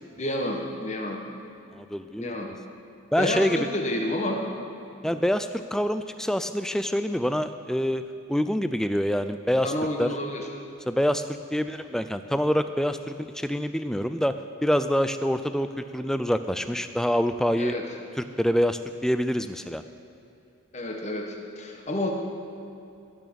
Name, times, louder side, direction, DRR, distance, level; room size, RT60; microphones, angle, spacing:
voice 1, 0.2-1.2 2.2-2.5 3.2-4.5 9.6-10.5 17.6-17.9 20.7-22.1, left 1 dB, 35° left, 1 dB, 1.4 m, -29 dB
voice 2, 1.7-2.5 3.1-3.7 5.0-8.0 8.3-9.7 10.0-10.1 10.9-11.2 11.5-17.7 18.2-19.8, equal, ahead, 10 dB, 0.3 m, -26 dB
17.5 x 6.2 x 7.0 m, 2.8 s
head